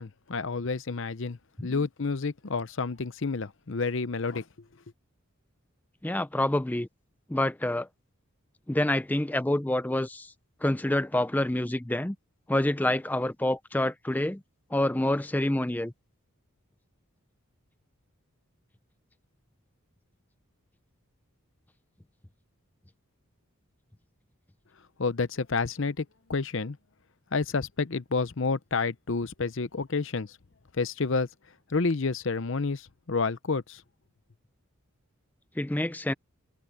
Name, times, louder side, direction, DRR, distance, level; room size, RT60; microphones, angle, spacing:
voice 1, 0.0-4.5 25.0-26.8 27.3-30.4 30.7-31.3 31.7-33.8, left 4 dB, 55° left, 0.7 m, -29 dB
voice 2, 6.0-6.9 7.3-7.9 8.7-10.3 10.6-12.2 12.5-14.4 14.7-15.9 35.6-36.1, left 1 dB, 10° left, 0.4 m, -27 dB
open air
head